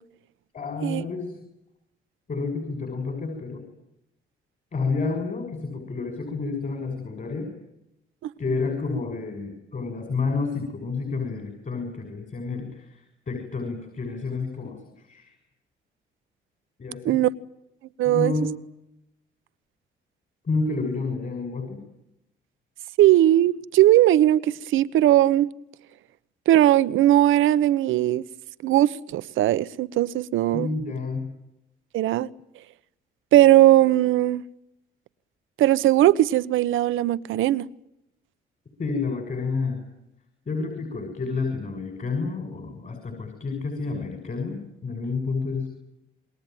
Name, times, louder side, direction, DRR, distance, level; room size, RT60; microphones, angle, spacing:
voice 1, 0.5-1.4 2.3-3.6 4.7-7.5 8.4-15.4 16.8-17.2 18.0-18.5 20.4-21.8 30.5-31.3 38.8-39.8 40.5-45.7, left 4 dB, 40° left, 6.4 m, -30 dB
voice 2, 18.0-18.3 23.0-25.5 26.5-28.2 28.6-30.7 31.9-32.3 33.3-34.4 35.6-37.7, right 14 dB, 85° right, 1.0 m, -19 dB
27.5 x 21.5 x 9.2 m
cardioid pair, 90°, 20 cm